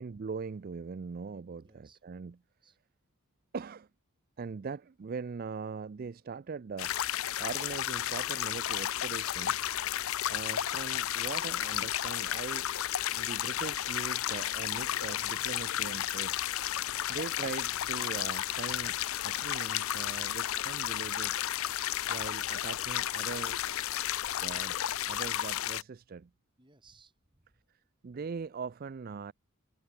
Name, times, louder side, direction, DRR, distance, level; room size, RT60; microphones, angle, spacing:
voice 1, 0.0-2.4 3.5-3.9 4.4-7.0 7.4-9.6 10.3-12.7 13.2-16.5 17.1-21.4 22.1-23.6 24.3-26.3 27.7-29.3, right 5 dB, 40° right, 0.4 m, -41 dB
voice 2, 1.6-2.0 2.6-2.8 16.8-17.3 26.6-27.6, right 5 dB, 20° right, 2.9 m, -61 dB
sound 1, 6.8-25.8, left 12 dB, 70° left, 0.5 m, -33 dB
Glass, 13.5-19.7, left 6 dB, 20° left, 3.7 m, -64 dB
head